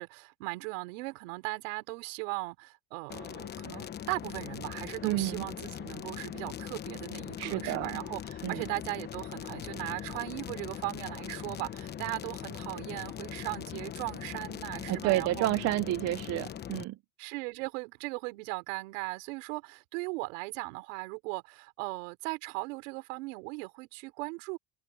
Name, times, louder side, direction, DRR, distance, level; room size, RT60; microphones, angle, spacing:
voice 1, 0.0-15.5 17.2-24.6, right 27 dB, 70° right, 4.4 m, -38 dB
sound 1, 3.1-16.8, left 10 dB, 25° left, 1.0 m, -41 dB
voice 2, 5.0-5.4 7.4-8.0 8.4-8.6 14.9-17.0, right 17 dB, 40° right, 0.7 m, -30 dB
open air
supercardioid pair, 135°, 39 cm